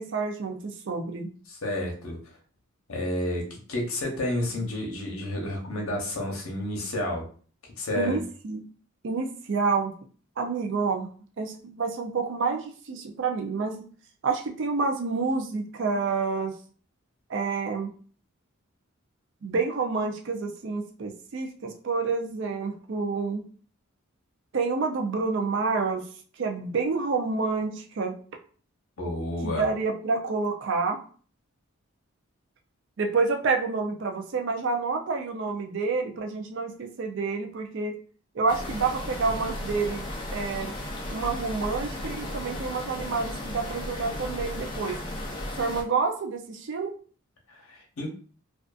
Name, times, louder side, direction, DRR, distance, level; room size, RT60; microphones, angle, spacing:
voice 1, 0.0-1.3 8.0-8.6 9.0-9.9 10.4-11.1 11.4-13.8 14.2-16.5 17.3-17.9 19.4-23.4 24.5-26.1 26.4-28.1 29.4-31.0 33.0-37.9 38.3-40.8 41.1-45.0 45.6-46.9, right 4 dB, 55° right, 3 dB, 0.4 m, -28 dB
voice 2, 1.5-2.2 2.9-7.2 7.8-8.2 29.0-29.7 47.5-48.1, left 1 dB, 75° left, 0 dB, 0.8 m, -30 dB
sound 1, 38.5-45.8, left 1 dB, 20° left, 0.4 m, -35 dB
2.5 x 2.4 x 2.3 m, 0.42 s
head